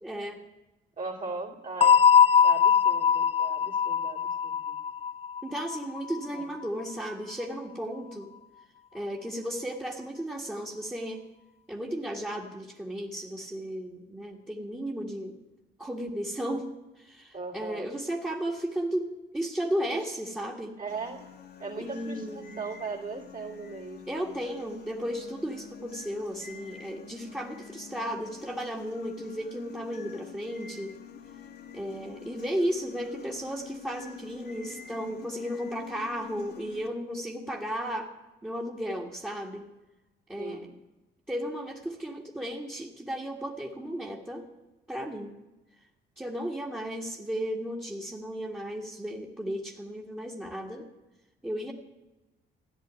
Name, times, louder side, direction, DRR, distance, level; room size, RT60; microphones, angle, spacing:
voice 1, 0.0-0.4 5.4-8.3 8.9-11.2 11.7-15.3 15.8-16.6 17.0-19.1 19.3-20.7 21.8-22.6 24.1-30.9 31.7-38.1 38.4-39.6 40.3-40.7 41.3-44.4 44.9-45.3 46.2-50.9 51.4-51.7, equal, 10° right, 0 dB, 1.8 m, -34 dB
voice 2, 1.0-2.0 2.4-4.8 6.3-6.4 17.3-18.0 19.9-20.0 20.8-21.2 21.6-24.3 40.4-40.8, right 4 dB, 45° right, -1 dB, 2.8 m, -38 dB
sound 1, 1.8-6.4, left 7 dB, 30° left, 0.4 m, -22 dB
sound 2, 20.9-36.9, left 7 dB, 55° left, 1.7 m, -47 dB
14.0 x 10.0 x 9.5 m, 1.1 s
cardioid pair, 90°, 20 cm